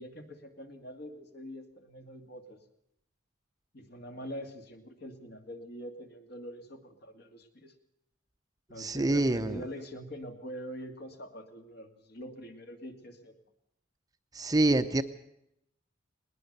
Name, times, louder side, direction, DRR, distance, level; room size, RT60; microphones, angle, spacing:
voice 1, 0.0-2.6 3.7-7.7 8.7-13.4, equal, 50° left, 5 dB, 2.4 m, -44 dB
voice 2, 8.8-9.6 14.3-15.0, right 2 dB, 20° right, 9 dB, 0.7 m, -26 dB
20.0 x 19.5 x 6.7 m, 0.79 s
head